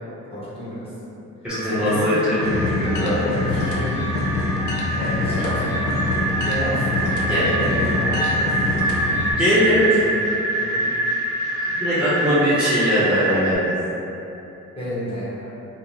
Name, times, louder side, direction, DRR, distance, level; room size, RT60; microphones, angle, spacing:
voice 1, 0.3-0.9 1.8-2.1 3.4-4.0 4.9-5.9 6.4-7.0 7.2-8.5 9.9-10.2 10.6-10.9 14.8-15.5, equal, 20° left, -11 dB, 1.0 m, -30 dB
voice 2, 1.4-3.3 7.3-7.5 9.4-9.9 11.5-13.7, equal, 5° right, -13 dB, 0.8 m, -21 dB
sound 1, 1.5-13.5, right 2 dB, 80° right, 0.8 m, -26 dB
sound 2, 2.4-9.3, left 3 dB, 75° left, 0.5 m, -25 dB
2.6 x 2.1 x 3.0 m, 2.8 s
cardioid pair, 90°, 30 cm